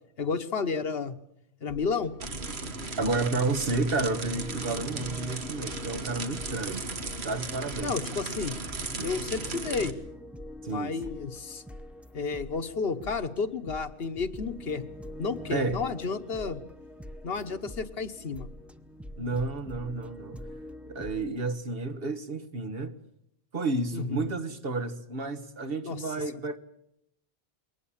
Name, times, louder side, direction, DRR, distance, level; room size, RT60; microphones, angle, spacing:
voice 1, 0.2-1.2 1.6-2.1 7.8-8.5 9.0-9.9 10.7-11.6 12.1-14.8 15.2-16.6 17.2-18.5 23.9-24.3 25.8-26.0, left 5 dB, 70° left, 1.3 m, -31 dB
sound 1, 1.7-21.3, left 1 dB, ahead, 0.8 m, -45 dB
sound 2, 2.2-9.9, right 3 dB, 85° right, 1.9 m, -36 dB
voice 2, 3.0-6.9 7.2-8.0 10.6-11.0 15.5-15.8 19.2-20.4 20.9-23.0 23.5-26.6, right 3 dB, 65° right, 1.6 m, -31 dB
21.5 x 19.0 x 8.7 m
omnidirectional pair, 1.1 m